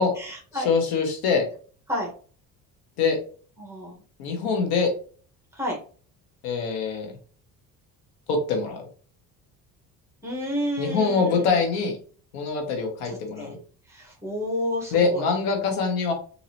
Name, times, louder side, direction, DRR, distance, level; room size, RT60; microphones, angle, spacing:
voice 1, 0.0-0.7 1.9-2.1 3.6-4.0 5.5-5.8 10.2-11.6 13.1-13.5 13.9-15.3, equal, 10° right, -1 dB, 1.4 m, -31 dB
voice 2, 0.5-1.5 3.0-3.2 4.2-4.9 6.4-7.1 8.3-8.9 10.8-12.0 12.3-13.6 14.9-16.1, left 5 dB, 85° left, 4 dB, 1.1 m, -24 dB
3.9 x 2.8 x 2.9 m, 0.42 s
cardioid pair, 125°, 36 cm